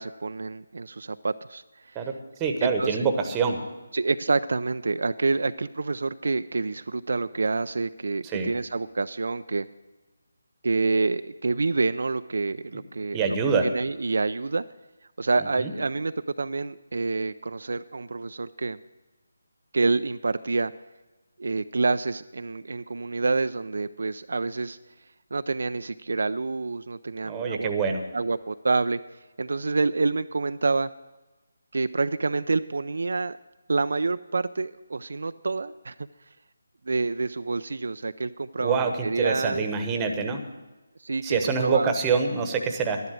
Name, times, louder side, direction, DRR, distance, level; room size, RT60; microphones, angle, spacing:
voice 1, 0.0-2.0 2.6-3.0 3.9-9.7 10.6-13.4 13.6-14.6 15.2-18.8 19.7-20.7 21.4-24.8 25.3-27.7 28.1-30.9 31.7-33.4 33.7-36.1 36.9-38.8 39.0-39.6 41.0-41.9, right 3 dB, 70° right, 11 dB, 0.4 m, -27 dB
voice 2, 1.9-3.6 8.2-8.5 13.1-13.7 15.6-15.7 27.2-28.0 38.6-40.4 41.2-43.0, right 5 dB, 15° right, 5 dB, 1.1 m, -25 dB
11.5 x 11.0 x 6.4 m, 1.1 s
figure-of-eight pair, 160°, 0 cm